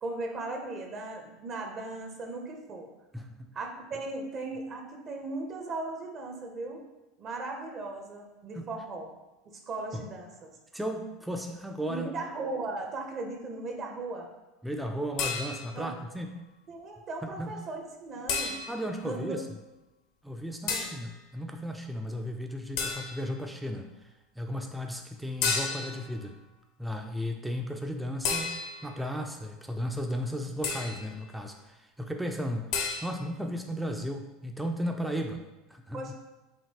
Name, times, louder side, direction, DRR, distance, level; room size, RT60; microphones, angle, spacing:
voice 1, 0.0-2.9 3.5-6.8 7.2-9.1 9.5-10.5 11.9-14.3 15.7-15.9 16.7-18.6 19.0-19.4 20.7-20.9 35.9-36.1, right 3 dB, 45° right, 2 dB, 0.8 m, -37 dB
voice 2, 10.7-12.1 14.6-16.4 17.2-17.5 18.7-19.6 20.2-26.4 26.8-28.6 28.8-36.1, equal, 5° right, 3 dB, 0.4 m, -35 dB
sound 1, 15.2-15.9 18.3-18.9 20.7-21.1 22.8-23.3 25.4-26.1 28.2-29.0 30.6-31.1 32.7-33.0, left 5 dB, 65° left, 0.7 m, -32 dB
5.1 x 2.7 x 2.8 m, 1.0 s
hypercardioid pair, 90°, 0 cm